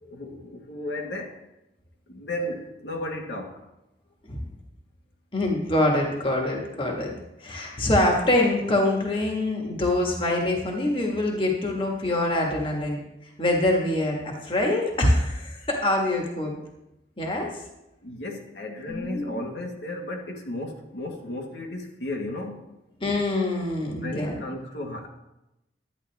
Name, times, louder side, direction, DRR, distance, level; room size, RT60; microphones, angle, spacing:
voice 1, 0.0-1.3 2.1-3.5 18.0-22.6 23.9-25.1, left 1 dB, 75° left, 0 dB, 1.6 m, -34 dB
voice 2, 5.3-7.1 7.4-13.0 13.4-16.5 17.2-17.5 18.9-19.4 23.0-24.4, left 1 dB, 30° left, 0 dB, 1.6 m, -24 dB
11.5 x 10.0 x 3.5 m, 0.91 s
head